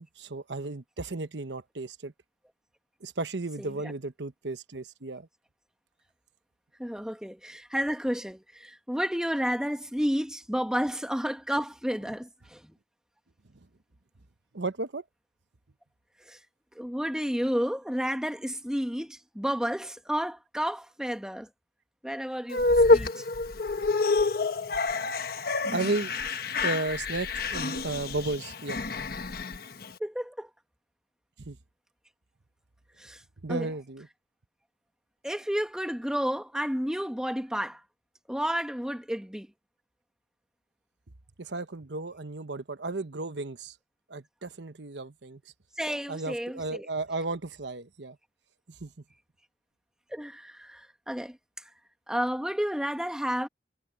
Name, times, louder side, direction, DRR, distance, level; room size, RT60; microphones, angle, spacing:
voice 1, 0.0-2.1 3.0-5.3 12.1-12.2 14.5-15.0 25.7-26.1 26.6-28.8 31.4-31.6 33.4-34.1 41.4-43.8 44.1-45.4 46.1-48.2 48.7-48.9, right 2 dB, 85° right, 1.1 m, -34 dB
voice 2, 6.8-12.7 16.3-16.4 16.7-21.5 22.0-23.2 30.0-30.5 33.0-33.2 33.5-33.7 35.2-37.8 38.3-39.5 45.8-46.8 50.1-51.4 52.1-53.5, equal, 5° right, 1.7 m, -31 dB
sound 1, 22.5-29.9, left 3 dB, 55° left, 1.2 m, -27 dB
head